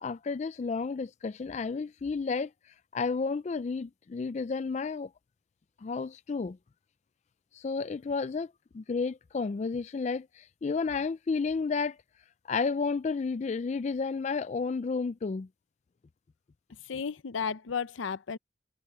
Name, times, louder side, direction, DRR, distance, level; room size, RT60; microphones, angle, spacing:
voice 1, 0.0-2.5 2.9-5.1 5.8-6.6 7.5-12.0 12.5-15.5, left 4 dB, 35° left, 0.3 m, -31 dB
voice 2, 16.8-18.4, left 6 dB, 90° left, 0.6 m, -33 dB
head